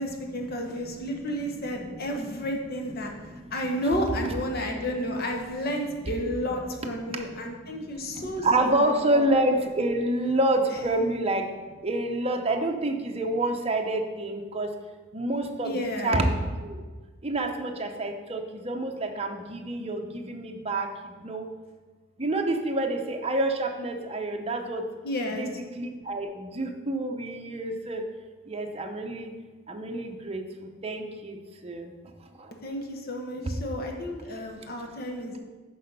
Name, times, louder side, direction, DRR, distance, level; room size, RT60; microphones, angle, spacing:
voice 1, 0.0-3.1 3.5-9.3 10.9-11.0 15.6-16.1 25.0-25.5 32.6-35.4, equal, 50° left, 2 dB, 1.0 m, -31 dB
voice 2, 0.8-2.5 3.0-3.6 4.5-4.6 7.0-11.5 11.8-14.7 15.1-16.8 17.2-21.5 22.2-24.9 25.3-28.0 28.5-29.3 29.7-31.9 32.4-32.5 33.4-33.5, right 1 dB, 30° right, 3 dB, 0.8 m, -28 dB
6.3 x 5.5 x 6.8 m, 1.4 s
head